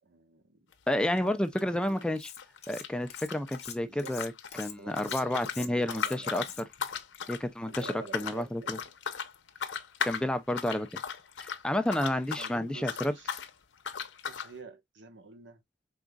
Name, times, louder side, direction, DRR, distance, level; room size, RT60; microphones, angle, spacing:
voice 1, 0.0-0.7 1.1-2.0 3.8-4.2 4.8-6.6 7.7-8.9 9.5-9.7 12.4-13.4 14.3-15.6, right 4 dB, 75° right, 1.1 m, -49 dB
sound 1, 0.7-0.9 1.2-3.7 4.0-12.6 12.8-13.5 13.8-14.5, left 7 dB, 85° left, 0.8 m, -37 dB
voice 2, 0.9-2.3 2.7-4.3 4.6-6.4 7.3-7.9 8.1-8.8 10.0-11.0 11.4-13.1, left 1 dB, 5° left, 0.4 m, -30 dB
Cutlery silverware, 2.2-2.8 3.1-6.9, left 9 dB, 35° left, 0.9 m, -44 dB
5.2 x 3.6 x 2.3 m
head